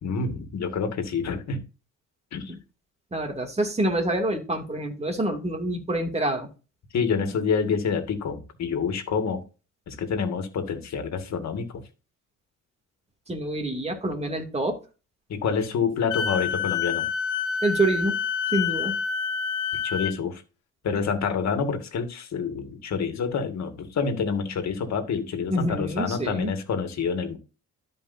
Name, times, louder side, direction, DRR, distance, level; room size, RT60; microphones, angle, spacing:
voice 1, 0.0-1.6 2.3-2.5 6.9-9.4 9.9-11.8 15.3-17.1 19.8-20.4 20.8-27.4, left 5 dB, 65° left, 7 dB, 2.1 m, -27 dB
voice 2, 3.1-6.5 13.3-14.8 17.6-18.1 18.5-19.0 25.5-26.5, right 1 dB, 20° right, 3 dB, 2.7 m, -26 dB
Wind instrument woodwind instrument, 16.1-20.2, left 6 dB, 80° left, 1.0 m, -27 dB
13.0 x 5.3 x 2.8 m, 0.32 s
cardioid pair, 90°, 30 cm